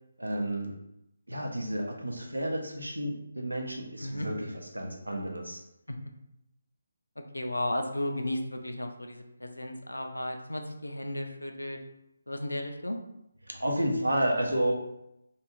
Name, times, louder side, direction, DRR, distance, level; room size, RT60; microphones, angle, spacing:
voice 1, 0.2-0.7 1.3-5.6 13.5-14.8, right 1 dB, 85° right, 1 dB, 0.6 m, -31 dB
voice 2, 7.3-11.8 12.3-13.0, left 1 dB, 85° left, 5 dB, 0.4 m, -34 dB
2.5 x 2.3 x 3.1 m, 0.83 s
figure-of-eight pair, 150°, 0 cm